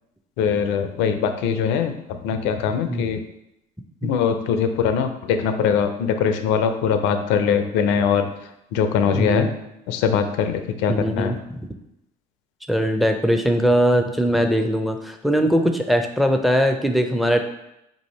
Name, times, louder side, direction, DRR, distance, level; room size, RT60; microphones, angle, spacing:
voice 1, 0.4-3.2 4.0-8.3 8.7-9.5 9.9-11.3, left 7 dB, 70° left, 8 dB, 0.4 m, -22 dB
voice 2, 9.1-9.5 10.9-11.6 12.7-17.4, equal, ahead, 5 dB, 0.5 m, -21 dB
2.7 x 2.6 x 4.2 m, 0.85 s
hypercardioid pair, 60°, 20 cm